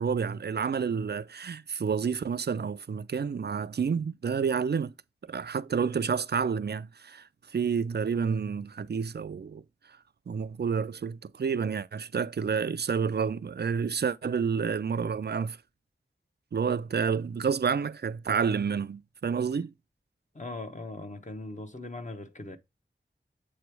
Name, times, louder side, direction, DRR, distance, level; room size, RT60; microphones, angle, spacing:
voice 1, 0.0-4.9 5.2-7.2 7.5-9.6 10.3-15.6 16.5-19.7, right 6 dB, 60° right, 0.4 m, -29 dB
voice 2, 20.3-22.6, left 2 dB, 40° left, 0.9 m, -39 dB
7.7 x 3.1 x 4.6 m
wide cardioid pair, 45°, 20 cm